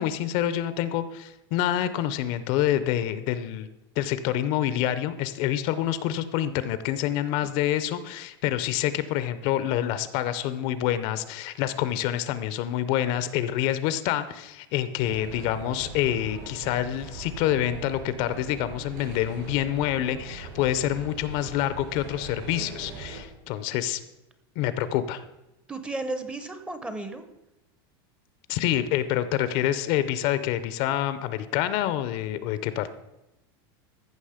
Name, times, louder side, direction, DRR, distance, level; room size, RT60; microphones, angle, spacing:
voice 1, 0.0-3.7 4.0-24.0 24.6-25.2 28.5-32.9, left 12 dB, 45° left, 13 dB, 0.6 m, -27 dB
sound 1, 15.0-23.2, right 4 dB, 60° right, 4.7 m, -40 dB
voice 2, 25.7-27.2, right 2 dB, 10° right, 9 dB, 0.7 m, -34 dB
14.5 x 6.1 x 4.9 m, 0.93 s
supercardioid pair, 160°, 13 cm